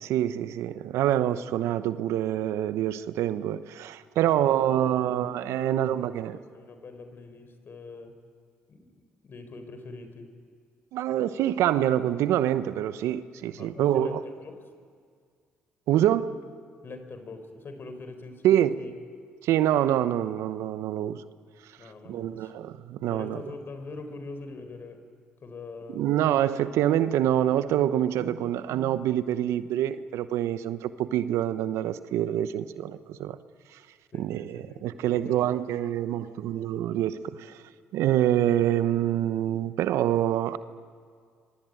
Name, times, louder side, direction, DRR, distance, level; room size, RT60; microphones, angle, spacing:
voice 1, 0.0-6.4 10.9-14.2 15.9-16.4 18.4-18.8 19.4-21.2 22.1-23.4 25.9-33.4 33.7-33.8 34.1-37.6 37.9-40.6, right 11 dB, 70° right, 0.9 m, -26 dB
voice 2, 4.3-5.3 5.6-8.2 8.7-10.3 13.6-14.6 16.8-18.5 18.8-18.9 21.8-22.5 23.0-25.0 25.4-26.1 34.1-35.5, left 3 dB, 50° left, 4.6 m, -43 dB
26.5 x 23.5 x 9.2 m
hypercardioid pair, 55°, 5 cm